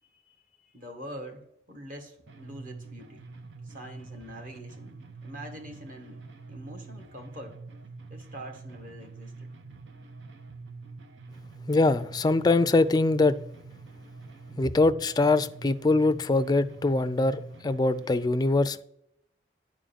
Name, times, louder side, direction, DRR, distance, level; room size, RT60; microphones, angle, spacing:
voice 1, 0.3-3.2 3.6-6.2 6.5-7.6 8.1-9.5, equal, 50° right, 1.6 m, -44 dB
sound 1, 2.3-18.3, right 3 dB, 80° right, 0.7 m, -45 dB
voice 2, 11.7-13.4 14.5-18.8, left 2 dB, 20° left, 0.4 m, -23 dB
10.0 x 3.7 x 6.9 m
head